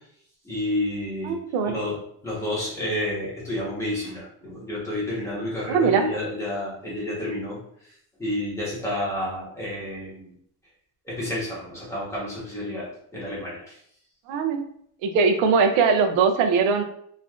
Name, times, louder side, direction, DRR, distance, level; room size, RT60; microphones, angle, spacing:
voice 1, 0.4-1.4 1.6-2.0 2.2-7.6 8.2-10.3 11.0-13.8, left 1 dB, 5° left, -7 dB, 1.0 m, -30 dB
voice 2, 1.2-1.8 5.7-6.0 14.3-14.7 15.0-16.8, right 5 dB, 90° right, 6 dB, 0.6 m, -21 dB
3.2 x 2.5 x 2.4 m, 0.66 s
cardioid pair, 165°, 44 cm